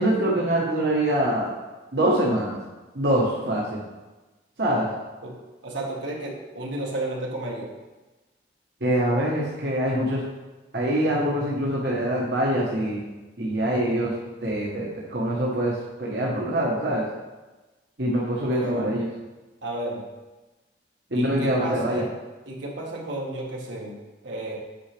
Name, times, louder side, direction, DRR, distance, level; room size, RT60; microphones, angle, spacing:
voice 1, 0.0-1.5 1.9-2.6 2.9-3.8 4.6-4.9 8.8-10.2 10.7-13.0 13.4-14.1 14.4-17.1 18.0-19.1 21.1-22.0, right 1 dB, 60° right, -4 dB, 1.2 m, -24 dB
voice 2, 5.6-7.7 18.5-19.0 19.6-20.1 21.1-22.1 22.5-24.6, right 1 dB, 80° right, -1 dB, 1.6 m, -32 dB
8.7 x 6.4 x 3.4 m, 1.2 s
head